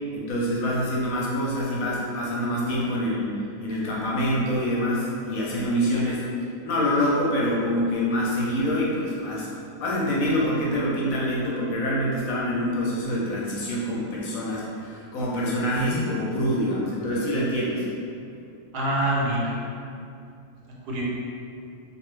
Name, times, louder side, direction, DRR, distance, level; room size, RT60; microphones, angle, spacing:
voice 1, 0.1-6.2 6.6-9.5 9.8-17.9, equal, 70° left, -5 dB, 0.9 m, -26 dB
voice 2, 18.7-19.5 20.9-21.0, right 1 dB, 85° right, -4 dB, 1.2 m, -25 dB
2.6 x 2.3 x 3.1 m, 2.6 s
omnidirectional pair, 1.6 m